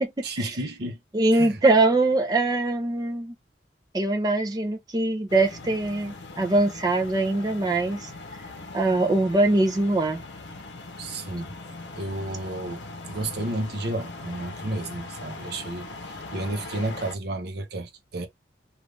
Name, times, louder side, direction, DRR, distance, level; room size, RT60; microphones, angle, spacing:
voice 1, 0.2-1.0 1.3-1.6 11.0-11.6 11.9-18.3, right 2 dB, 60° right, 0.7 m, -32 dB
voice 2, 1.1-3.3 3.9-8.1 8.7-10.2, right 2 dB, 20° right, 0.5 m, -22 dB
sound 1, 5.3-17.2, left 3 dB, 65° left, 0.7 m, -40 dB
2.5 x 2.4 x 3.1 m
head